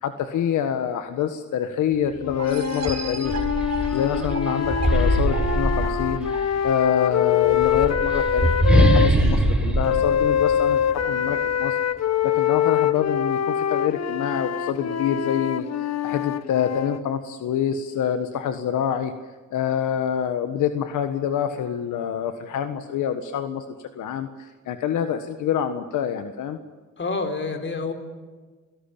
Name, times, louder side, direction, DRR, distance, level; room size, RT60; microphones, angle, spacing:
voice 1, 0.0-3.4 3.9-6.3 6.6-11.8 12.2-19.1 19.5-23.6 23.9-26.6, left 9 dB, 80° left, 8 dB, 1.5 m, -26 dB
sound 1, 2.2-9.1 9.8-17.0, left 9 dB, 60° left, 1.3 m, -24 dB
sound 2, 2.3-2.4 2.8-6.5 7.4-11.1, right 1 dB, 5° right, 5.3 m, -22 dB
sound 3, 2.4-7.9, right 5 dB, 60° right, 2.5 m, -36 dB
voice 2, 27.0-27.9, left 3 dB, 40° left, 6 dB, 4.4 m, -27 dB
28.5 x 17.5 x 8.7 m, 1.4 s
cardioid pair, 90°, 30 cm